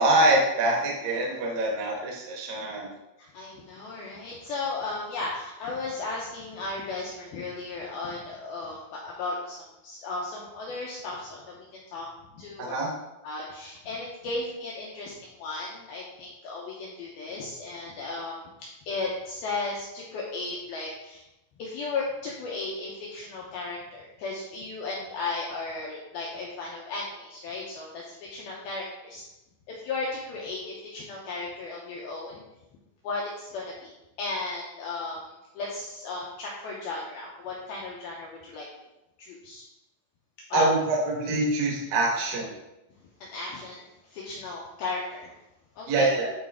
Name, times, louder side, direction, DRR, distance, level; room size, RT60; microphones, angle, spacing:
voice 1, 0.0-2.9 12.6-12.9 40.5-42.5 45.9-46.3, right 2 dB, 60° right, -2 dB, 2.7 m, -24 dB
voice 2, 3.2-9.6 9.8-12.1 12.3-12.7 13.2-18.4 18.9-21.3 21.6-29.2 29.7-32.4 33.0-33.9 34.2-38.7 39.2-39.6 40.5-40.7 43.2-45.4 45.8-46.1, left 3 dB, 90° left, -3 dB, 2.1 m, -35 dB
11.0 x 4.3 x 3.6 m, 0.94 s
omnidirectional pair, 5.6 m